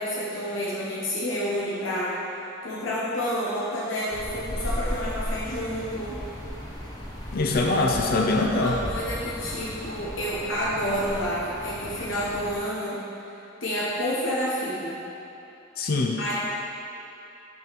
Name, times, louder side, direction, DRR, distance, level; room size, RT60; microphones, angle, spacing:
voice 1, 0.0-6.2 8.5-13.3 13.6-15.0 16.2-16.3, equal, 85° left, -6 dB, 0.9 m, -29 dB
sound 1, 4.1-12.6, equal, 20° left, 1.0 m, -35 dB
voice 2, 7.3-8.8 15.8-16.2, left 2 dB, 50° left, 1 dB, 0.5 m, -23 dB
5.5 x 3.8 x 5.8 m, 2.9 s
head